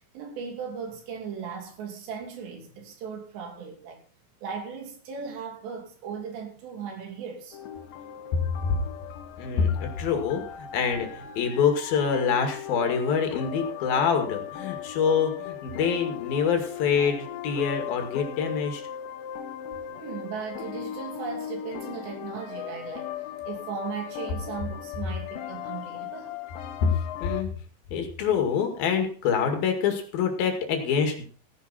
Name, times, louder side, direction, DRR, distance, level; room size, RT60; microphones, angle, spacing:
voice 1, 0.1-4.0 4.4-7.6 8.1-8.2 19.9-23.1 23.5-26.4 27.9-28.0, right 6 dB, 75° right, 4.9 m, -37 dB
sound 1, 7.5-27.4, left 10 dB, 80° left, 3.4 m, -38 dB
voice 2, 9.4-18.8 26.8-26.9 27.2-27.5 27.9-31.2, left 6 dB, 60° left, 3.8 m, -26 dB
16.0 x 10.0 x 4.4 m
omnidirectional pair, 5.0 m